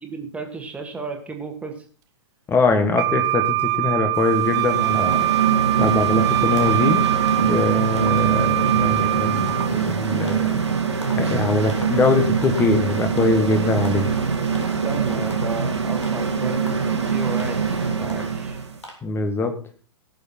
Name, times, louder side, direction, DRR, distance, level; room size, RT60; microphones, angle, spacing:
voice 1, 0.0-1.7 14.8-18.6, right 3 dB, 10° right, 3 dB, 2.1 m, -33 dB
voice 2, 2.5-5.2 5.8-7.0 7.4-10.6 11.2-14.1 19.0-19.5, left 3 dB, 15° left, 7 dB, 1.7 m, -22 dB
Wind instrument woodwind instrument, 3.0-9.7, right 17 dB, 25° right, 0.5 m, -23 dB
sound 1, 4.2-18.8, right 6 dB, 75° right, 2.2 m, -23 dB
sound 2, 5.1-5.5 5.9-6.2 6.6-6.9 7.3-7.6 8.0-8.3 8.7-9.0 9.5-9.8 10.3-10.6 11.0-11.3 11.7-12.1 12.4-12.8 13.2-13.5 13.8-14.2 14.5-14.9 15.3-15.6 16.0-16.3 16.7-17.0 17.4-17.7 18.1-18.4 18.8-18.9, equal, 80° left, 3.3 m, -42 dB
17.0 x 7.1 x 4.4 m, 0.41 s
figure-of-eight pair, 105°, 15 cm